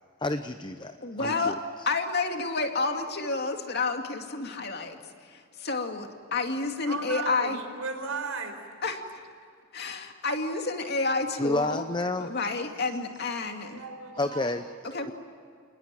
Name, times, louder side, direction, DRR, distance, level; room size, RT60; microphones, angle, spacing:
voice 1, 0.2-1.5 11.4-12.3 14.2-15.1, left 2 dB, 20° left, 9 dB, 0.7 m, -30 dB
voice 2, 1.0-1.6 1.9-7.6 8.8-9.2 9.7-11.9 12.2-13.8 14.9-15.1, left 3 dB, 50° left, 4 dB, 2.4 m, -30 dB
voice 3, 6.9-8.6 13.6-14.6, right 4 dB, 90° right, 5 dB, 4.6 m, -35 dB
28.5 x 20.0 x 9.1 m, 2.3 s
head